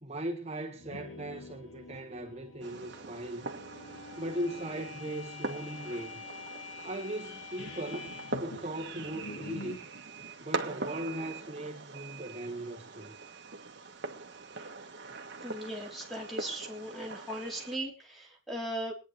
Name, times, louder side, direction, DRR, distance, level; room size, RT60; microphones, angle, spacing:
voice 1, 0.0-3.5 4.2-6.2 6.8-9.9 10.4-13.1, right 1 dB, 30° right, 1.5 m, -38 dB
sound 1, 0.7-9.9, left 3 dB, 75° left, 2.0 m, -46 dB
Fireworks, 2.6-17.8, right 3 dB, 55° right, 1.5 m, -42 dB
voice 2, 15.4-18.9, right 1 dB, ahead, 3.4 m, -38 dB
24.5 x 9.8 x 3.2 m
head